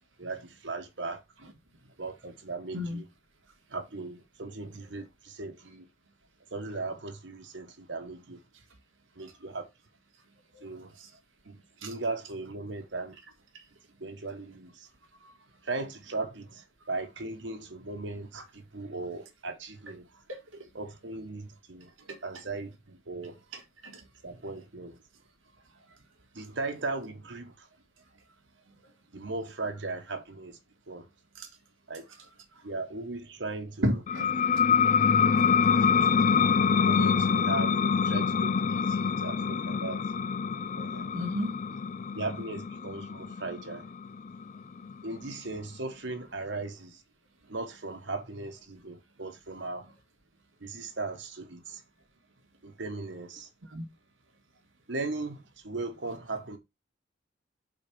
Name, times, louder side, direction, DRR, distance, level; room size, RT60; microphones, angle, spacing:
voice 1, 0.2-1.2 2.0-3.0 3.7-5.9 6.5-8.4 9.2-9.7 10.6-10.9 11.4-13.2 14.0-14.9 15.6-20.1 20.7-21.9 22.2-23.4 24.2-25.0 26.3-27.7 29.1-30.6 30.9-31.1 31.9-32.0 32.6-34.0 35.7-36.5 36.8-40.0 40.8-41.1 42.1-43.9 45.0-47.0 47.5-49.9 50.6-51.8 52.6-53.5 54.9-56.6, right 3 dB, 65° right, 1.2 m, -38 dB
voice 2, 23.5-24.0 31.4-31.5 33.8-34.3 41.1-41.5 53.7-53.9, equal, 90° right, 1.5 m, -32 dB
sound 1, 34.1-45.3, left 6 dB, 40° left, 0.3 m, -26 dB
5.3 x 4.0 x 6.0 m
head